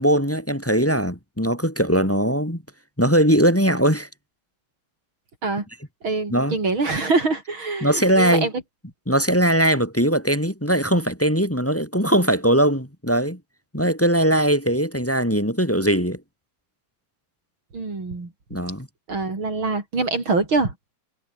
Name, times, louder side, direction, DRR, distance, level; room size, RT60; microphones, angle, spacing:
voice 1, 0.0-2.6 3.0-4.1 6.3-6.5 7.8-8.5 9.1-13.4 13.7-16.2 18.5-18.9, right 1 dB, 5° left, 3.3 m, -20 dB
voice 2, 6.0-8.5 17.7-18.3 19.1-20.7, right 3 dB, 85° right, 6.0 m, -24 dB
omnidirectional pair, 2.2 m